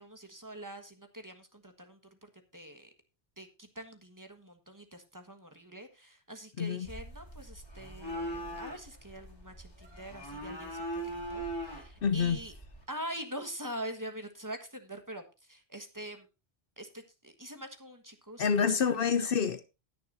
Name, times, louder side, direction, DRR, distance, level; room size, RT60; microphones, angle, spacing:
voice 1, 0.0-2.9 3.4-12.5 12.9-16.3 16.8-18.5 18.9-19.3, right 1 dB, 20° right, 1.4 m, -44 dB
voice 2, 6.6-6.9 12.0-12.4 18.4-19.7, left 6 dB, 65° left, 0.8 m, -27 dB
sound 1, 6.9-12.8, right 1 dB, 25° left, 3.7 m, -41 dB
19.0 x 6.6 x 2.6 m
omnidirectional pair, 1.1 m